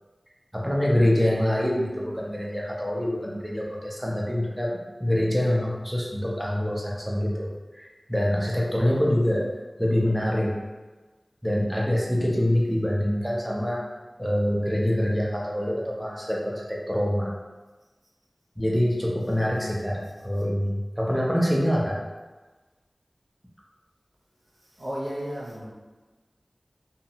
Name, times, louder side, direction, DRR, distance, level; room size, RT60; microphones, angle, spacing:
voice 1, 0.5-9.5 9.8-10.5 11.4-13.8 14.2-17.3 18.6-22.0, equal, ahead, -4 dB, 0.6 m, -25 dB
voice 2, 19.4-20.5 24.6-25.7, equal, 65° right, -5 dB, 0.6 m, -36 dB
2.8 x 2.1 x 2.8 m, 1.2 s
wide cardioid pair, 45°, 0 cm